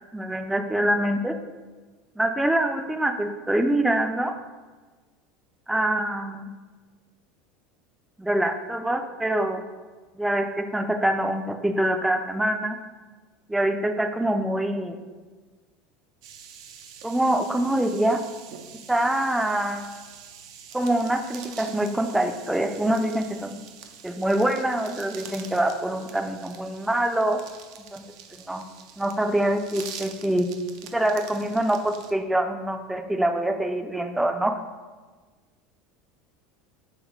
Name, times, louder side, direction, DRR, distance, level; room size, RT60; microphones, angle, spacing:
voice 1, 0.1-1.4 2.2-4.3 5.7-6.5 8.2-9.6 10.2-12.8 13.5-15.0 17.0-18.2 18.9-19.9 20.7-23.6 24.0-27.4 27.9-28.0 28.4-28.6 29.0-30.5 30.9-34.6, right 1 dB, 5° right, 5 dB, 0.3 m, -25 dB
sound 1, 16.2-32.1, right 7 dB, 85° right, 0.5 m, -45 dB
3.6 x 3.1 x 4.7 m, 1.4 s
supercardioid pair, 120°, 3 cm